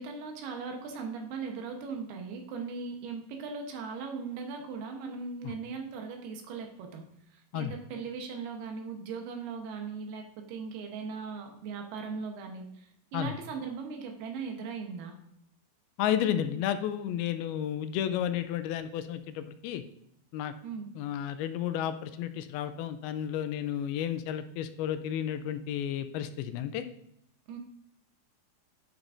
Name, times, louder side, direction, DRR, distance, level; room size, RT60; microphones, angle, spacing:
voice 1, 0.0-7.0 7.3-15.2 20.6-20.9 27.5-27.6, right 5 dB, 90° right, 4 dB, 3.1 m, -39 dB
voice 2, 16.0-19.8 20.3-20.5 21.0-26.8, left 10 dB, 85° left, 10 dB, 2.4 m, -32 dB
9.6 x 6.0 x 2.6 m, 0.76 s
omnidirectional pair, 4.4 m